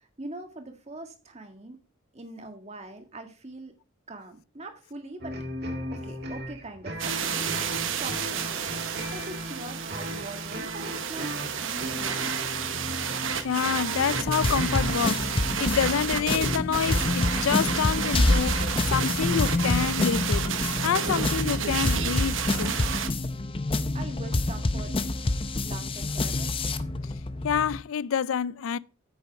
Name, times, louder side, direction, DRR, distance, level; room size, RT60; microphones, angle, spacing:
voice 1, 0.0-1.8 2.1-3.8 4.1-5.4 5.9-8.8 9.1-12.5 23.9-24.9 25.6-26.5, right 2 dB, 35° right, 1.7 m, -42 dB
sound 1, 5.2-15.3, equal, 55° right, 1.6 m, -37 dB
sound 2, 7.0-23.1, right 7 dB, 70° right, 1.0 m, -31 dB
voice 2, 13.4-15.3 15.6-20.5 20.8-22.7 27.0-27.1 27.4-28.8, left 7 dB, 90° left, 0.4 m, -27 dB
sound 3, 14.1-27.8, left 2 dB, 25° left, 0.6 m, -27 dB
9.2 x 6.4 x 4.6 m
head